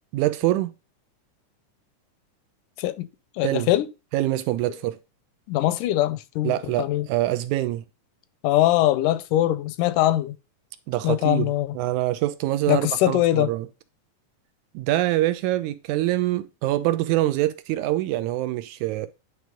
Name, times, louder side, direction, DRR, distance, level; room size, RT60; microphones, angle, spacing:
voice 1, 0.1-0.7 3.4-3.7 4.1-5.0 6.4-7.9 10.9-13.7 14.7-19.1, right 15 dB, 80° right, 1.9 m, -25 dB
voice 2, 2.8-3.1 3.4-3.9 5.5-7.1 8.4-10.4 11.0-11.8 12.7-13.5, left 14 dB, 85° left, 2.1 m, -22 dB
9.4 x 3.2 x 5.0 m
omnidirectional pair, 3.7 m